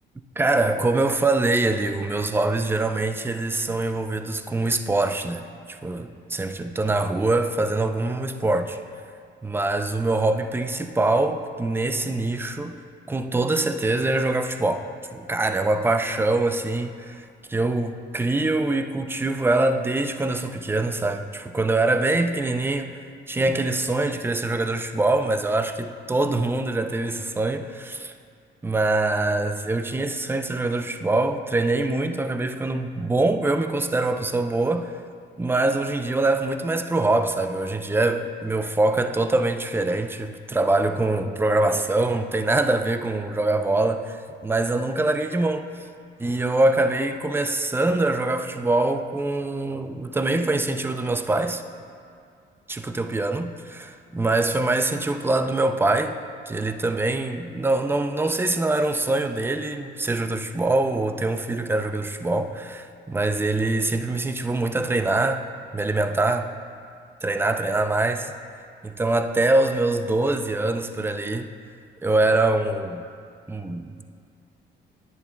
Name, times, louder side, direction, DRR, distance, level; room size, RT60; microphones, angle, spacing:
voice 1, 0.4-5.4 5.8-8.8 9.4-12.8 13.1-22.9 23.3-28.1 28.6-34.9 35.4-45.7 46.2-51.6 52.7-56.2 56.5-65.4 65.7-66.5 67.2-68.3 68.8-71.5 72.0-73.0 73.5-74.0, right 2 dB, 10° right, 8 dB, 0.4 m, -24 dB
10.5 x 9.4 x 2.2 m, 2.2 s
cardioid pair, 90°, 20 cm